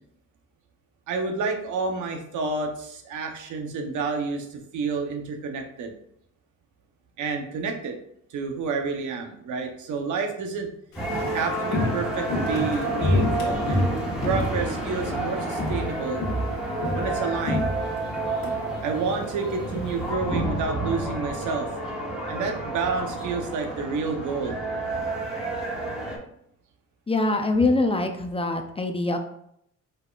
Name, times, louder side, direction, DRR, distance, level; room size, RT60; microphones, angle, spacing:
voice 1, 1.1-5.9 7.2-8.0 8.3-10.7 11.3-13.9 14.2-16.2 16.9-17.7 18.8-21.9 22.3-24.6, right 4 dB, 75° right, 4 dB, 0.9 m, -29 dB
Walk footsteps, 10.9-15.3 15.5-15.9 16.2-18.5 18.8-18.9, left 1 dB, 65° left, 1.4 m, -27 dB
sound 1, 11.0-26.2, right 2 dB, ahead, 1.8 m, -30 dB
voice 2, 27.1-29.2, left 2 dB, 20° left, 5 dB, 0.5 m, -24 dB
5.1 x 4.2 x 2.4 m, 0.72 s
cardioid pair, 90°, 30 cm